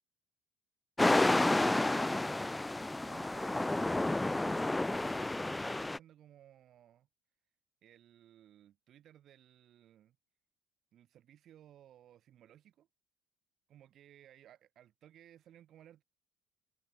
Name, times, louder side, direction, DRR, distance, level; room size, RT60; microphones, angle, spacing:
sound 1, 1.0-6.0, left 2 dB, 10° left, 0.3 m, -30 dB
voice 1, 3.0-7.1 7.8-10.2 10.9-12.9 13.7-16.0, right 11 dB, 50° right, 7.9 m, -59 dB
figure-of-eight pair, 55°, 0 cm